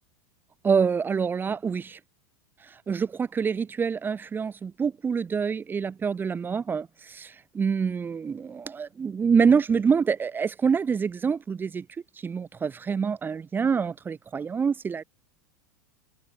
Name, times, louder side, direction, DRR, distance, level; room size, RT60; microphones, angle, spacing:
voice 1, 0.6-2.0 2.6-11.8 12.2-15.0, right 6 dB, 20° right, 1.7 m, -26 dB
hypercardioid pair, 105°, 9 cm